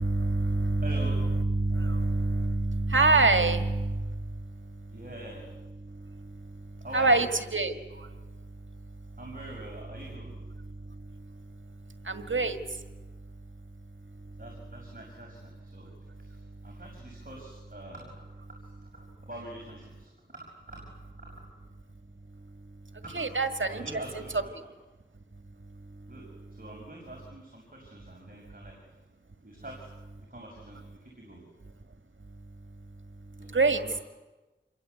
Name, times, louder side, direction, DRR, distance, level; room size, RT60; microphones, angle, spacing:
voice 1, 0.0-5.0 5.8-9.2 10.6-14.4 15.7-16.8 22.3-23.9 25.3-26.1 28.5-28.6 32.2-34.0, right 3 dB, 90° right, 8 dB, 1.8 m, -29 dB
voice 2, 0.8-1.2 4.9-5.5 6.8-7.2 9.2-10.3 14.4-15.9 16.2-18.2 18.6-21.3 23.0-23.2 23.6-24.5 26.1-28.8 29.4-29.9 30.3-31.5 33.4-34.0, right 1 dB, 50° right, -1 dB, 6.5 m, -45 dB
28.0 x 23.0 x 8.4 m, 1.2 s
wide cardioid pair, 50°, 19 cm